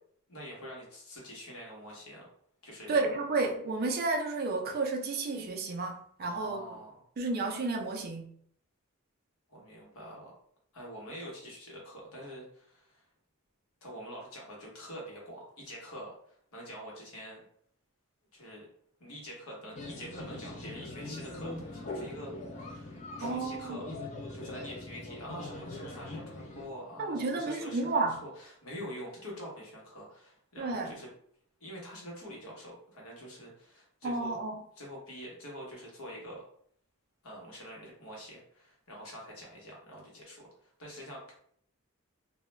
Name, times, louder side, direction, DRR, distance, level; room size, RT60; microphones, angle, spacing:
voice 1, 0.3-2.3 2.6-3.0 6.2-7.0 9.5-10.3 10.7-13.0 13.8-17.4 18.3-18.7 19.0-23.9 24.3-31.1 31.6-34.3 34.8-36.4 37.2-41.3, equal, 75° left, -2 dB, 1.0 m, -45 dB
voice 2, 2.9-6.6 7.2-8.3 23.2-23.8 27.0-28.2 30.6-30.9 34.0-34.6, right 3 dB, 45° right, 2 dB, 0.4 m, -31 dB
sound 1, 19.8-26.7, left 2 dB, 30° left, 0.4 m, -42 dB
2.3 x 2.1 x 3.0 m, 0.63 s
head